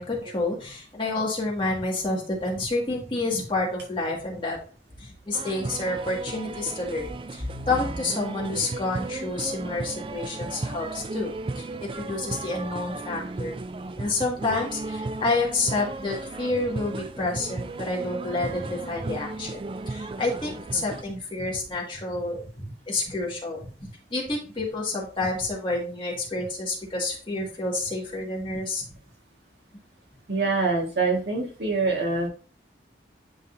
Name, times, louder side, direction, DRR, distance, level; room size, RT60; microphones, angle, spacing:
voice 1, 0.0-4.6 5.0-13.6 14.0-19.6 19.9-22.4 22.9-28.8, left 2 dB, 25° left, -3 dB, 1.9 m, -29 dB
sound 1, 5.3-21.0, right 3 dB, 30° right, 0.3 m, -35 dB
voice 2, 30.3-32.3, right 3 dB, 65° right, 0 dB, 1.7 m, -25 dB
10.5 x 3.9 x 2.6 m, 0.40 s
head